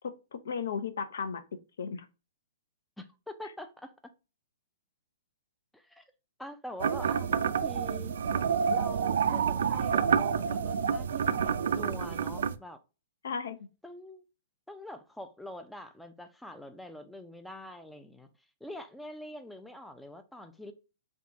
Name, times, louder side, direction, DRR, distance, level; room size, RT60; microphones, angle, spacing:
voice 1, 0.0-1.4 1.8-2.1 3.4-3.5 13.2-13.7, left 6 dB, 75° left, 0.6 m, -35 dB
voice 2, 3.0-3.9 5.7-6.0 6.4-8.1 8.7-12.8 13.8-14.2 14.7-18.3 18.6-20.7, left 1 dB, ahead, 0.4 m, -45 dB
sound 1, 6.8-12.5, right 7 dB, 75° right, 0.4 m, -28 dB
3.6 x 2.4 x 3.9 m
hypercardioid pair, 160°, 0 cm